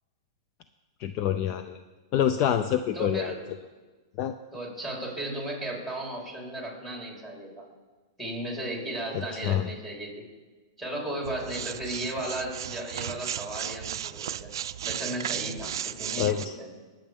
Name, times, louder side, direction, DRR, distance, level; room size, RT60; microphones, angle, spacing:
voice 1, 1.0-1.8 2.1-3.4 4.2-4.3 9.1-9.7 16.2-16.6, left 10 dB, 40° left, 9 dB, 0.5 m, -26 dB
voice 2, 2.9-3.4 4.5-7.6 8.2-10.2 10.8-14.5 14.8-16.7, right 1 dB, 5° left, -3 dB, 4.1 m, -35 dB
sound 1, 11.2-16.5, right 10 dB, 75° right, 0.4 m, -35 dB
20.5 x 7.7 x 3.6 m, 1.3 s
hypercardioid pair, 135°, 2 cm